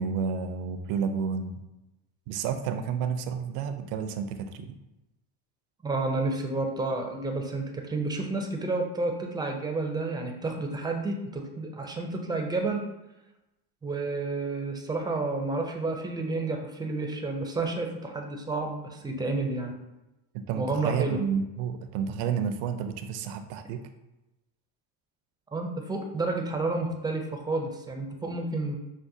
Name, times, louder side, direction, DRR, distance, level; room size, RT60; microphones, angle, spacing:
voice 1, 0.0-1.6 2.3-4.8 20.3-23.8, right 6 dB, 75° right, 8 dB, 0.6 m, -30 dB
voice 2, 5.8-12.9 13.8-19.8 20.5-21.3 25.5-28.8, right 3 dB, 10° right, 2 dB, 0.4 m, -30 dB
6.0 x 2.1 x 2.6 m, 0.96 s
supercardioid pair, 90°, 50 cm